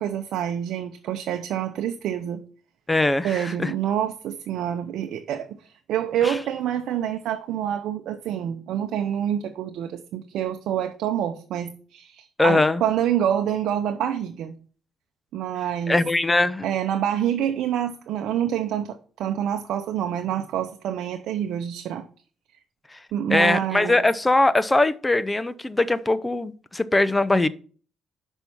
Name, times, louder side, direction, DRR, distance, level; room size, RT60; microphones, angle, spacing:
voice 1, 0.0-2.4 3.2-5.6 5.9-14.5 15.3-16.0 16.6-22.0 23.1-24.0, right 10 dB, 80° right, 0.7 m, -27 dB
voice 2, 2.9-3.7 6.2-6.4 12.4-12.8 15.9-16.6 23.3-27.5, left 2 dB, 15° left, 0.6 m, -21 dB
6.1 x 5.4 x 6.9 m
cardioid pair, 90°, 0 cm